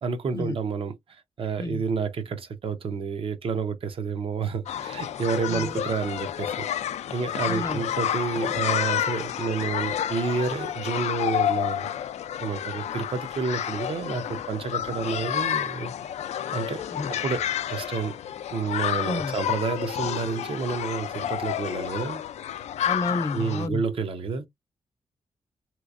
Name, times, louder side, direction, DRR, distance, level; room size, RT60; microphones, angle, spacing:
voice 1, 0.0-6.7 7.1-11.9 12.4-15.9 16.5-16.8 17.1-18.2 18.5-22.2 23.3-24.5, right 5 dB, 55° right, 0.7 m, -30 dB
sound 1, 4.7-23.7, left 10 dB, 85° left, 0.4 m, -30 dB
voice 2, 7.5-7.8 16.9-17.1 19.0-19.4 22.9-23.8, left 2 dB, 30° left, 0.5 m, -31 dB
3.3 x 3.0 x 2.4 m
wide cardioid pair, 145°, 11 cm